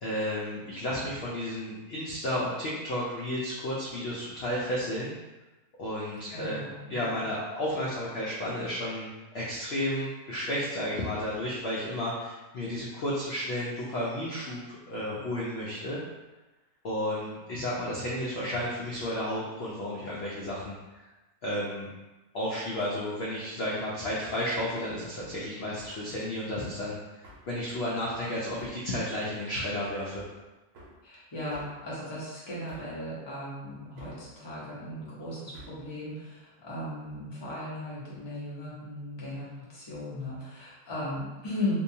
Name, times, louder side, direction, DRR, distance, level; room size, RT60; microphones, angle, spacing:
voice 1, 0.0-5.1 5.8-6.6 6.9-16.0 16.8-21.0 21.4-21.9 22.3-30.2, left 1 dB, 70° left, -6 dB, 0.6 m, -32 dB
voice 2, 6.3-7.2 31.0-41.8, left 1 dB, 25° left, -8 dB, 0.6 m, -37 dB
Hammer, 25.2-25.4 25.8-26.0 27.2-27.5 28.6-28.9 30.1-30.4 30.7-31.0 31.5-31.8 32.7-33.0 34.0-34.3 35.5-35.9, right 1 dB, 80° right, 1.1 m, -50 dB
2.7 x 2.2 x 2.7 m, 1.1 s
omnidirectional pair, 1.6 m